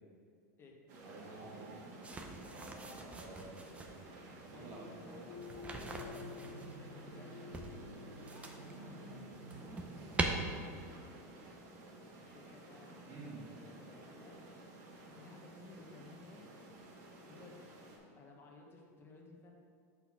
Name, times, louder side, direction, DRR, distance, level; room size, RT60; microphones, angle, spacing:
sound 1, 0.9-18.0, right 2 dB, 65° right, 1.6 m, -52 dB
voice 1, 1.0-1.8 3.1-3.5 4.4-4.9 9.9-10.5 13.0-13.4, right 3 dB, 45° right, -2 dB, 1.8 m, -51 dB
sound 2, 2.0-4.0 5.4-6.7 7.5-8.8 9.2-10.3, right 3 dB, 15° right, 0.6 m, -42 dB
voice 2, 2.5-3.2 4.5-5.2 5.7-7.8 8.2-14.4 15.1-16.7 17.2-17.6 18.2-19.5, left 3 dB, 25° left, 0 dB, 1.2 m, -57 dB
sound 3, 5.3-10.5, left 4 dB, 70° left, 0.8 m, -52 dB
5.6 x 4.3 x 5.9 m, 2.3 s
supercardioid pair, 130°, 9 cm